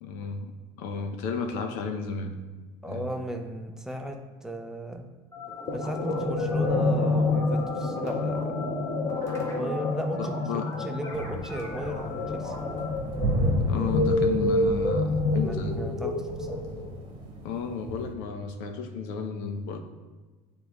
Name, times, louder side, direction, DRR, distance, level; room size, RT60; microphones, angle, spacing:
voice 1, 0.0-0.5 0.8-2.4 2.9-3.1 10.2-10.7 13.7-15.8 17.4-19.8, left 5 dB, 80° left, 6 dB, 0.8 m, -33 dB
voice 2, 2.8-5.0 5.7-8.6 9.5-12.5 15.4-16.7, equal, 5° right, 3 dB, 0.6 m, -36 dB
sound 1, 5.3-12.9, left 2 dB, 20° left, 1.3 m, -39 dB
sound 2, 5.7-17.0, left 2 dB, 50° left, 1.0 m, -28 dB
sound 3, 11.1-18.1, equal, 35° right, 1.1 m, -32 dB
9.9 x 3.5 x 3.0 m, 1.3 s
cardioid pair, 145°, 14 cm